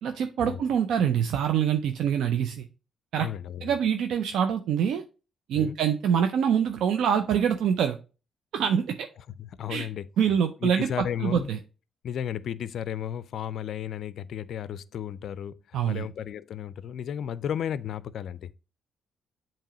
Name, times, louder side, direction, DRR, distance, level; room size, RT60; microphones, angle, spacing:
voice 1, 0.0-2.6 3.1-3.3 3.6-5.0 5.5-8.0 8.5-9.1 9.7-9.9 10.2-11.6 15.7-16.0, right 8 dB, 80° right, 0.5 m, -25 dB
voice 2, 3.2-3.8 5.5-5.8 9.4-10.1 10.6-11.5 12.0-18.5, left 9 dB, 65° left, 0.4 m, -34 dB
7.4 x 2.9 x 5.0 m
cardioid pair, 90°, 0 cm